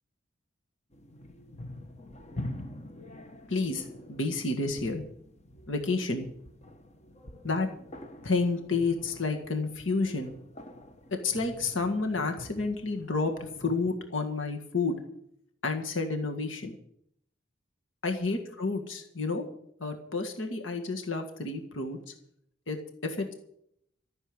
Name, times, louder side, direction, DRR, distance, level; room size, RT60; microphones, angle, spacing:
sound 1, 0.9-14.0, left 1 dB, 35° left, 1.3 m, -46 dB
voice 1, 3.5-5.0 5.7-6.3 7.4-7.7 8.2-10.3 11.1-15.0 15.6-16.7 18.0-19.4 19.8-22.0 22.7-22.8 23.0-23.3, left 3 dB, 80° left, 4 dB, 1.8 m, -30 dB
14.0 x 7.1 x 9.8 m, 0.71 s
head